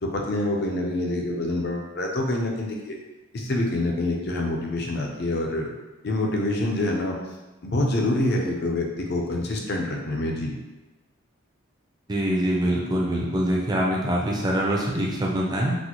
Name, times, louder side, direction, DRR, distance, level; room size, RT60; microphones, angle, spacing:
voice 1, 0.0-3.0 3.3-5.7 6.0-7.2 7.6-10.5, left 1 dB, 50° left, 0 dB, 0.5 m, -26 dB
voice 2, 12.1-15.8, equal, 20° right, -3 dB, 0.4 m, -24 dB
4.0 x 2.1 x 2.9 m, 1.1 s
head